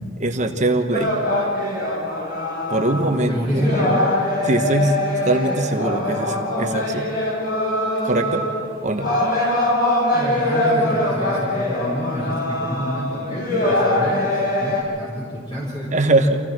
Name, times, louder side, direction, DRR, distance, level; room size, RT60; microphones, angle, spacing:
voice 1, 0.2-1.1 2.7-3.6 4.4-5.0 5.2-7.1 8.0-8.4 8.8-9.1 15.9-16.4, right 2 dB, 40° right, 5 dB, 1.3 m, -21 dB
sound 1, 0.9-3.2 3.5-14.8, left 1 dB, 50° left, 5.9 m, -23 dB
voice 2, 3.3-3.9 10.1-16.4, equal, 25° left, -7 dB, 4.9 m, -28 dB
27.5 x 16.0 x 6.1 m, 2.2 s
head